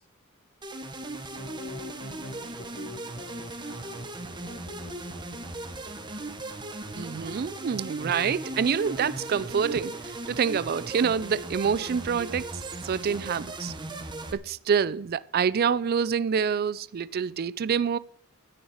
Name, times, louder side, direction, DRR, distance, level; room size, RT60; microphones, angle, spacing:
sound 1, 0.6-14.3, right 2 dB, 20° right, 1.1 m, -38 dB
voice 1, 1.2-4.1 4.4-5.6, left 4 dB, 80° left, 1.4 m, -47 dB
voice 2, 7.0-12.5 12.8-13.7 14.3-18.0, right 7 dB, 45° right, 0.4 m, -27 dB
10.0 x 7.1 x 8.7 m
head